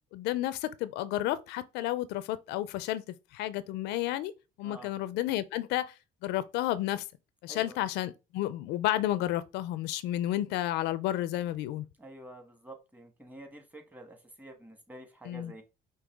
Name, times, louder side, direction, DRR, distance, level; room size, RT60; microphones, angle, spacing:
voice 1, 0.1-3.0 3.3-4.3 4.6-6.0 6.2-7.0 7.4-11.9 15.2-15.5, left 14 dB, 90° left, 0.4 m, -31 dB
voice 2, 7.5-7.8 12.0-15.6, right 1 dB, 10° right, 1.4 m, -49 dB
5.4 x 2.7 x 3.5 m
cardioid pair, 110°, 17 cm